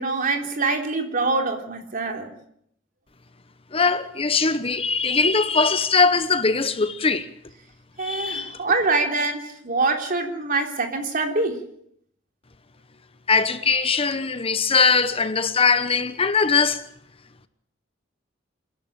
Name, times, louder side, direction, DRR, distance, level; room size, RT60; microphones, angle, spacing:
voice 1, 0.0-2.3 8.0-11.6, right 3 dB, 45° right, 3.5 m, -24 dB
voice 2, 3.7-7.3 8.0-8.6 13.3-16.8, left 4 dB, 30° left, 1.0 m, -21 dB
28.0 x 11.5 x 9.0 m
head